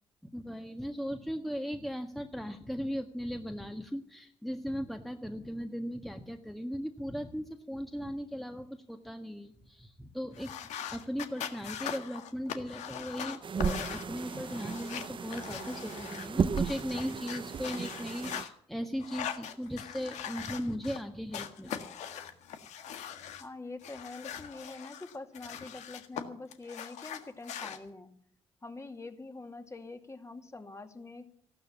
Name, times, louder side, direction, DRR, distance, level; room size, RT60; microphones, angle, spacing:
voice 1, 0.3-10.5 10.9-21.8, equal, ahead, 5 dB, 1.5 m, -38 dB
sound 1, 10.3-18.5 19.0-21.0 21.3-23.4 23.8-26.2 26.5-27.8, left 9 dB, 75° left, 1.7 m, -41 dB
sound 2, 13.4-18.4, right 6 dB, 45° right, 0.9 m, -35 dB
voice 2, 23.4-28.1 28.6-31.3, left 3 dB, 25° left, 6 dB, 2.4 m, -45 dB
15.0 x 12.0 x 7.2 m, 0.65 s
supercardioid pair, 55°, 12 cm